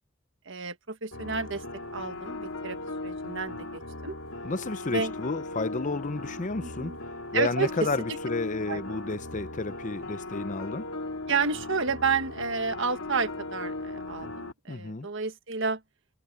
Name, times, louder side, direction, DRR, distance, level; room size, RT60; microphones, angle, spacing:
voice 1, 0.4-1.6 1.9-4.2 4.9-5.1 6.6-7.0 7.3-7.7 8.1-8.2 8.7-9.2 11.3-15.8, right 4 dB, 65° right, 1.6 m, -31 dB
sound 1, 1.1-14.5, left 2 dB, 80° left, 2.5 m, -38 dB
voice 2, 4.4-6.9 7.3-10.9 14.7-15.1, left 3 dB, 35° left, 0.7 m, -31 dB
head